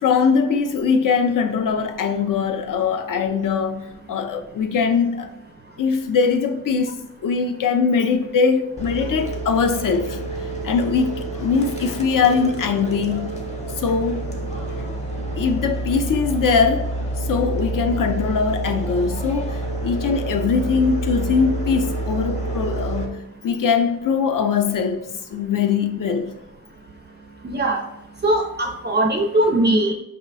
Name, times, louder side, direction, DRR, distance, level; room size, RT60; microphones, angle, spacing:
voice 1, 0.0-5.3 5.8-10.2 10.6-13.4 13.8-14.2 14.8-14.9 15.4-16.9 17.2-26.3, left 5 dB, 60° left, 0.6 m, -21 dB
sound 1, 8.8-23.1, right 2 dB, 20° left, 0.8 m, -28 dB
voice 2, 27.4-27.8 28.2-29.9, right 1 dB, 30° right, 0.4 m, -20 dB
5.4 x 2.1 x 3.9 m
wide cardioid pair, 145°, 37 cm